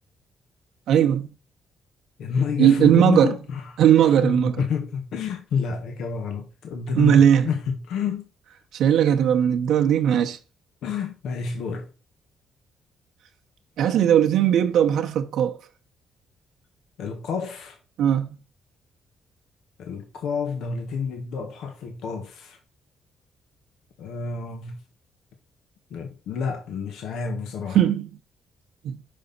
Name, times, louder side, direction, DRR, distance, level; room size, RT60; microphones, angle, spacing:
voice 1, 0.9-1.3 2.6-3.3 3.8-4.6 6.9-7.5 8.7-10.4 13.8-15.6 18.0-18.3 27.7-28.1 28.8-28.9, right 9 dB, 80° right, 1.0 m, -18 dB
voice 2, 2.2-8.3 10.8-11.9 17.0-17.8 19.8-22.6 24.0-24.8 25.9-27.8, left 6 dB, 80° left, 1.5 m, -29 dB
6.4 x 5.6 x 4.0 m
cardioid pair, 90°, 0 cm